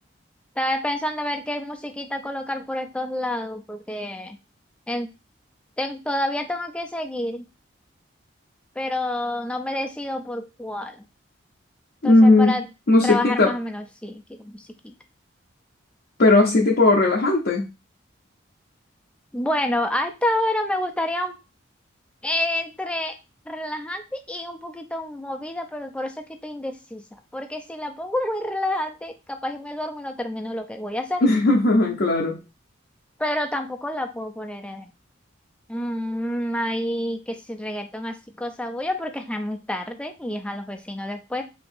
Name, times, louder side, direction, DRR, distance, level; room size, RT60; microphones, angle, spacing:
voice 1, 0.6-4.4 4.9-5.1 5.8-7.5 8.8-11.1 12.0-12.6 13.0-14.9 19.3-21.3 22.2-23.1 23.5-27.0 27.3-31.2 33.2-34.9 35.7-41.4, left 1 dB, 5° left, 5 dB, 0.4 m, -28 dB
voice 2, 12.0-12.6 12.9-13.5 16.2-17.6 31.2-32.4, left 2 dB, 55° left, -1 dB, 0.6 m, -17 dB
4.3 x 2.8 x 2.5 m, 0.27 s
head